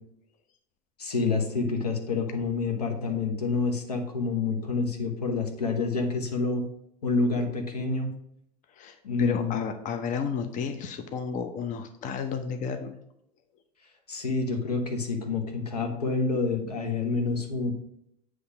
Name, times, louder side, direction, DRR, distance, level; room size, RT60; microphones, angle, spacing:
voice 1, 1.0-6.6 7.0-8.1 9.0-9.6 14.1-17.7, left 4 dB, 80° left, 4 dB, 1.1 m, -28 dB
voice 2, 8.7-13.0, left 6 dB, 40° left, 7 dB, 0.8 m, -32 dB
8.1 x 3.3 x 5.8 m, 0.76 s
figure-of-eight pair, 75°, 20 cm